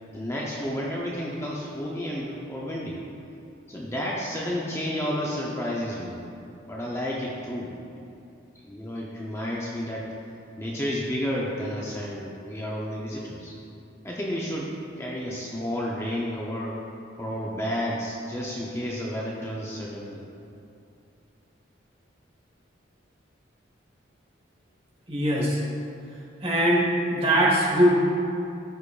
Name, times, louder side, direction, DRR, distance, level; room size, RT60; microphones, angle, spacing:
voice 1, 0.1-3.0 3.7-6.2 6.6-7.7 8.6-10.1 10.6-13.5 14.0-14.7 15.0-16.8 17.2-20.2, equal, 15° left, -4 dB, 0.5 m, -31 dB
voice 2, 25.1-25.6 26.4-27.9, equal, 30° right, -3 dB, 1.2 m, -21 dB
12.5 x 4.9 x 2.4 m, 2.6 s
head